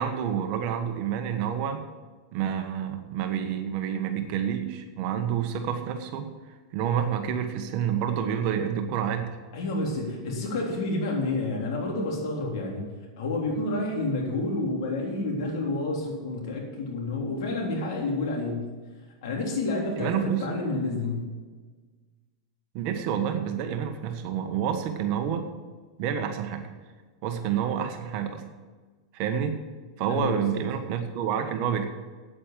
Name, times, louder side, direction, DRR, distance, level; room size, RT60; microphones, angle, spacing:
voice 1, 0.0-1.8 2.3-6.3 6.7-9.4 20.0-20.6 22.7-25.5 26.0-26.7 27.2-28.4 29.1-29.6 30.0-31.8, right 8 dB, 50° right, 6 dB, 1.3 m, -28 dB
voice 2, 9.5-12.9 13.2-18.7 19.2-21.3 30.1-30.6, left 2 dB, 70° left, -1 dB, 3.6 m, -29 dB
8.9 x 8.5 x 7.5 m, 1.4 s
supercardioid pair, 125°, 3 cm